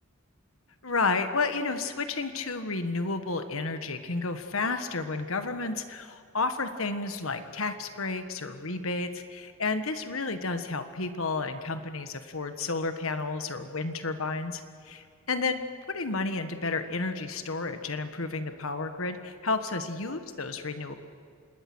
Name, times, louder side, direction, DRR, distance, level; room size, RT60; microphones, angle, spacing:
voice 1, 0.8-15.0 15.3-15.6 15.9-21.0, left 3 dB, 80° left, 8 dB, 1.5 m, -31 dB
26.5 x 20.5 x 6.3 m, 2.2 s
head